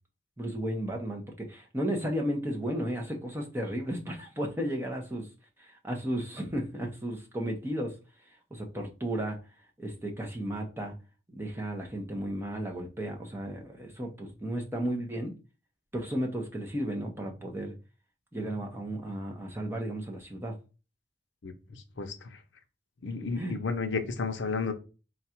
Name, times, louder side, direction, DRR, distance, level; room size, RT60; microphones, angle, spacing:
voice 1, 0.4-5.3 5.6-8.0 8.5-9.4 9.8-10.9 11.3-15.3 15.9-17.7 18.3-20.5 23.4-23.6, right 1 dB, 10° right, 0.7 m, -34 dB
voice 2, 21.4-22.4 23.0-24.7, left 4 dB, 70° left, 0.6 m, -33 dB
3.9 x 2.4 x 4.3 m
head